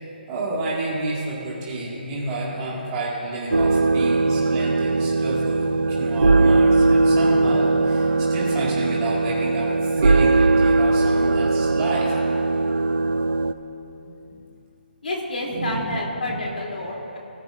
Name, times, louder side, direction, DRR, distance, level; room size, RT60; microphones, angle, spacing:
voice 1, 0.0-12.2 14.0-14.1 15.4-16.0 16.3-16.4, right 2 dB, 15° right, -6 dB, 2.0 m, -30 dB
sound 1, 3.5-13.5, right 3 dB, 80° right, 0.6 m, -19 dB
voice 2, 15.0-17.2, left 1 dB, 60° left, -2 dB, 3.2 m, -29 dB
20.0 x 13.0 x 2.6 m, 2.9 s
hypercardioid pair, 175°, 6 cm